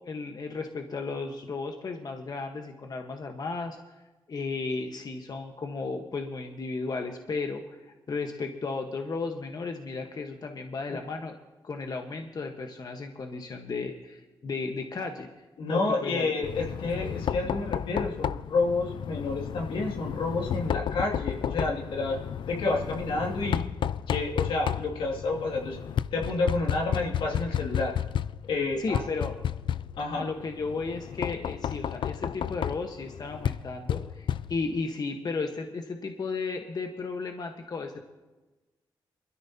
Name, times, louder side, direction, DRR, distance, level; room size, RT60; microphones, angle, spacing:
voice 1, 0.1-3.8 4.3-7.8 8.1-11.3 11.6-15.3 15.7-16.5 28.8-29.3 30.2-38.1, left 4 dB, 50° left, 4 dB, 1.3 m, -34 dB
voice 2, 15.6-22.2 22.5-23.6 24.1-25.8 26.1-27.9 28.5-29.0 30.0-30.3, left 3 dB, 90° left, -1 dB, 2.5 m, -29 dB
Knock, 16.4-34.8, left 9 dB, 70° left, 0.4 m, -32 dB
22.5 x 14.0 x 2.9 m, 1.2 s
cardioid pair, 65°, 8 cm